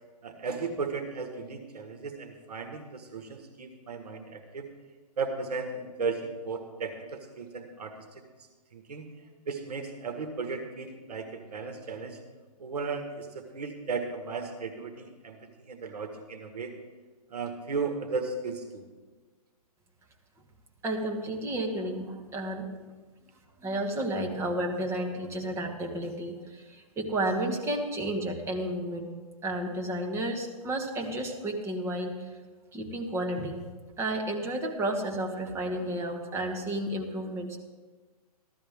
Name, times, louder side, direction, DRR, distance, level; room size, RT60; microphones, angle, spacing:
voice 1, 0.2-4.7 5.2-8.0 8.7-9.1 9.5-12.2 12.6-16.7 17.3-18.8, right 4 dB, 80° right, 5 dB, 1.6 m, -35 dB
voice 2, 20.8-22.7 23.6-29.1 29.4-32.3 32.7-33.6 34.0-37.6, right 1 dB, 15° right, 1 dB, 1.3 m, -32 dB
15.0 x 12.5 x 3.6 m, 1.3 s
hypercardioid pair, 140°, 20 cm